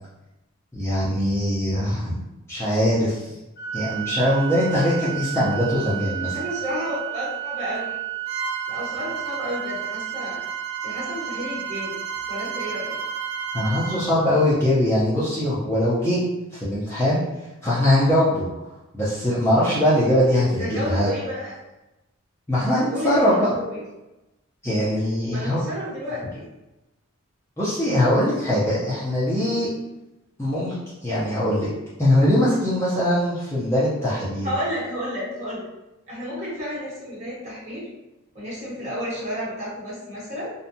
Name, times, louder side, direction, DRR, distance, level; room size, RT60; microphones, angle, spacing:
voice 1, 0.7-2.1 2.5-3.3 3.7-6.4 13.5-16.2 16.5-17.2 17.6-18.5 18.9-21.1 22.5-23.5 24.6-25.6 27.6-29.7 30.4-30.7 31.0-31.7 32.0-34.5, left 1 dB, 10° left, -10 dB, 0.5 m, -21 dB
Organ, 3.6-14.6, right 15 dB, 45° left, 0.8 m, -33 dB
voice 2, 6.2-8.0 8.7-10.5 10.8-13.0 20.6-21.6 22.7-23.8 25.3-26.4 34.4-35.7 36.1-37.9 38.3-40.5, equal, 30° right, -6 dB, 1.0 m, -31 dB
Bowed string instrument, 8.3-14.0, right 4 dB, 70° right, 0.4 m, -35 dB
2.6 x 2.2 x 2.6 m, 0.99 s
head